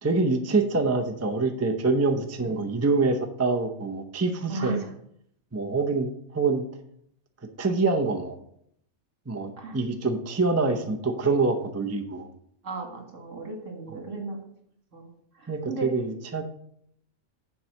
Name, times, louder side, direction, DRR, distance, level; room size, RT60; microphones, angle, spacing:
voice 1, 0.0-4.8 5.5-6.6 7.6-8.4 9.3-12.3 15.5-16.4, right 3 dB, 20° right, 4 dB, 0.5 m, -25 dB
voice 2, 1.8-2.7 4.5-4.9 9.6-9.8 12.6-14.4 14.9-15.9, right 3 dB, 60° right, 2 dB, 2.2 m, -36 dB
7.3 x 4.7 x 6.4 m, 0.70 s
omnidirectional pair, 1.5 m